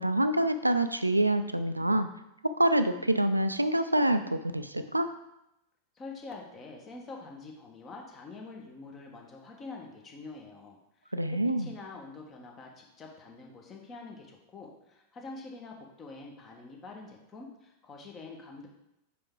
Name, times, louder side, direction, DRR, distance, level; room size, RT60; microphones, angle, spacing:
voice 1, 0.0-2.1 2.6-5.1 11.1-11.7, right 1 dB, 85° right, 10 dB, 0.4 m, -26 dB
voice 2, 6.0-11.1 11.4-18.7, left 3 dB, 25° left, 0 dB, 1.3 m, -46 dB
5.8 x 5.0 x 3.8 m, 0.86 s
figure-of-eight pair, 90°, 0 cm